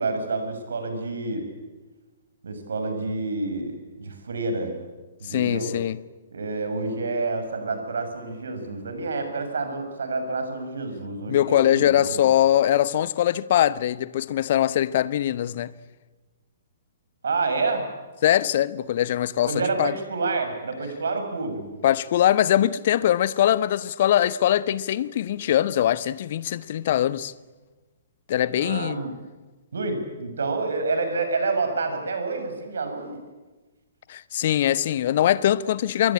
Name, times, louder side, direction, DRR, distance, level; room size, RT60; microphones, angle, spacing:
voice 1, 0.0-1.4 2.4-4.8 5.2-5.7 6.3-12.2 17.2-17.8 19.4-21.6 28.5-29.1 29.7-33.2, right 3 dB, 65° right, 6.5 m, -28 dB
voice 2, 5.3-6.0 11.3-15.7 18.2-19.5 19.8-20.0 21.8-27.3 28.3-29.0 34.1-36.1, left 11 dB, 45° left, 1.0 m, -22 dB
26.5 x 22.5 x 8.8 m
figure-of-eight pair, 115°, 0 cm